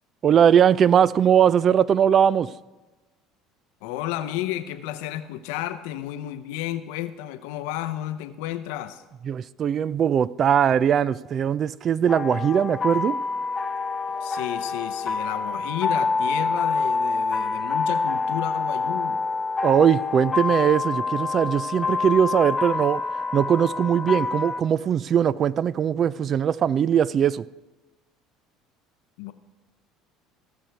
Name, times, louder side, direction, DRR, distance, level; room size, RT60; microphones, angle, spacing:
voice 1, 0.2-2.5 9.2-13.2 19.6-23.0 23.3-27.4, right 8 dB, 45° right, 0.3 m, -20 dB
voice 2, 3.8-9.0 14.2-19.2 29.2-29.3, left 13 dB, 75° left, 0.6 m, -32 dB
sound 1, 12.1-24.6, left 4 dB, 25° left, 0.5 m, -27 dB
16.0 x 6.2 x 4.6 m
supercardioid pair, 80°, 0 cm